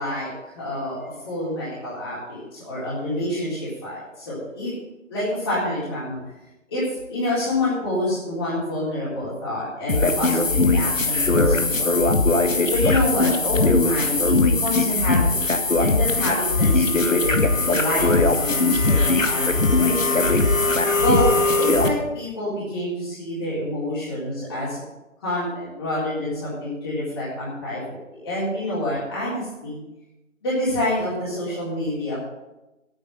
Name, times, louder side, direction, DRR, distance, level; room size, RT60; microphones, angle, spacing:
voice 1, 0.0-4.7 5.1-6.2 6.7-6.8 7.1-12.1 12.7-15.4 15.8-20.3 21.0-21.3 21.6-24.8 25.2-29.8 30.4-32.2, left 1 dB, 20° left, -10 dB, 3.8 m, -27 dB
sound 1, 9.9-21.9, left 3 dB, 75° left, 1.8 m, -20 dB
9.8 x 9.0 x 7.9 m, 0.99 s
figure-of-eight pair, 160°, 40 cm